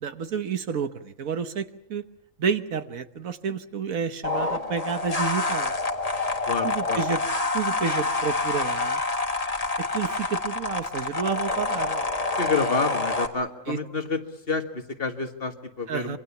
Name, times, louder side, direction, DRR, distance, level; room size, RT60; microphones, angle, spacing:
voice 1, 0.0-2.0 2.4-5.7 6.6-7.2 7.5-9.0 9.9-12.0 13.7-13.8 15.9-16.2, right 6 dB, 80° right, 10 dB, 1.6 m, -30 dB
sound 1, 4.2-13.3, left 3 dB, 25° left, 1.7 m, -27 dB
voice 2, 6.5-7.0 12.4-14.2 14.5-16.2, left 4 dB, 45° left, 6 dB, 1.9 m, -28 dB
26.5 x 24.5 x 7.2 m, 0.83 s
omnidirectional pair, 1.4 m